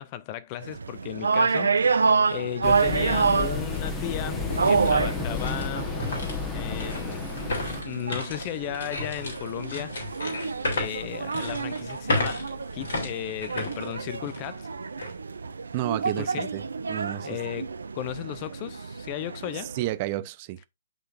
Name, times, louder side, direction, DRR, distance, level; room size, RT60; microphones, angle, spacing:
voice 1, 0.0-6.0 6.5-7.3 7.8-10.1 10.7-14.7 16.0-16.5 17.2-19.8, left 13 dB, 30° left, 0.5 m, -35 dB
sound 1, 0.6-19.9, right 5 dB, 70° right, 0.5 m, -29 dB
sound 2, 2.6-7.8, left 5 dB, 15° left, 1.3 m, -32 dB
sound 3, 3.1-3.2 3.7-14.6 15.0-15.1 15.7-16.0, left 2 dB, 60° left, 3.2 m, -34 dB
voice 2, 15.7-16.6 16.9-17.3 19.5-20.7, right 16 dB, 35° right, 0.6 m, -31 dB
11.0 x 3.7 x 2.5 m
figure-of-eight pair, 125°, 0 cm